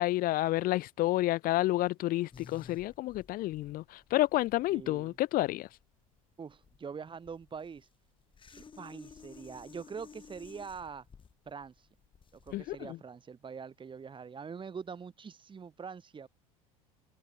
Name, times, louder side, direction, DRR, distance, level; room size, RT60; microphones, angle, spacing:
voice 1, 0.0-5.7 12.5-13.0, left 17 dB, 50° left, 1.7 m, -30 dB
sound 1, 2.3-12.9, left 6 dB, 25° left, 6.5 m, -55 dB
voice 2, 4.7-5.1 6.4-7.9 8.5-11.1 11.5-11.9 12.4-16.3, right 6 dB, 25° right, 3.9 m, -44 dB
hypercardioid pair, 80°, 18 cm